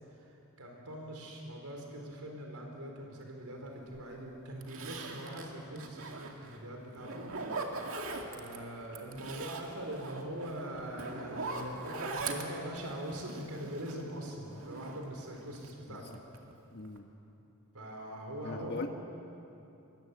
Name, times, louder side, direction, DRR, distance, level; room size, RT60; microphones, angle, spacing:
voice 1, 0.6-7.7 8.3-16.2 17.7-18.9, right 1 dB, 85° right, 1 dB, 4.4 m, -42 dB
Zipper (clothing), 3.9-4.0 4.6-6.6 7.0-8.6 8.9-14.1 14.5-15.7 16.0-16.5 16.8-17.0, right 3 dB, 65° right, 2.3 m, -41 dB
voice 2, 16.7-17.1 18.4-18.9, left 2 dB, 50° left, 4 dB, 1.3 m, -39 dB
25.0 x 21.0 x 8.5 m, 2.9 s
head